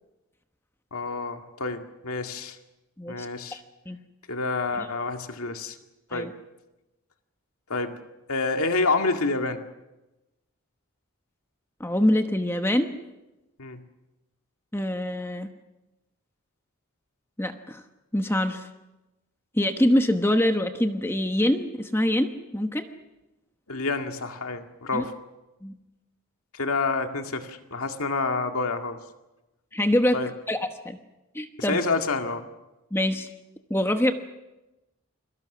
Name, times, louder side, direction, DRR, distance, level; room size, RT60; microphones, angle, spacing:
voice 1, 0.9-2.6 3.1-3.6 4.3-5.8 6.1-6.3 7.7-8.0 8.3-9.6 13.6-13.8 23.7-25.1 26.5-29.0 30.1-30.3 31.6-32.5, left 3 dB, 80° left, 5 dB, 2.1 m, -28 dB
voice 2, 3.0-3.6 3.9-4.0 6.1-6.3 11.8-12.9 14.7-15.5 17.4-17.8 18.1-18.7 19.5-22.9 24.9-25.0 25.6-25.7 29.7-30.2 30.5-31.0 31.3-31.8 32.9-33.3 33.7-34.1, left 1 dB, 10° left, 6 dB, 1.1 m, -24 dB
29.5 x 23.0 x 6.2 m, 1.0 s
head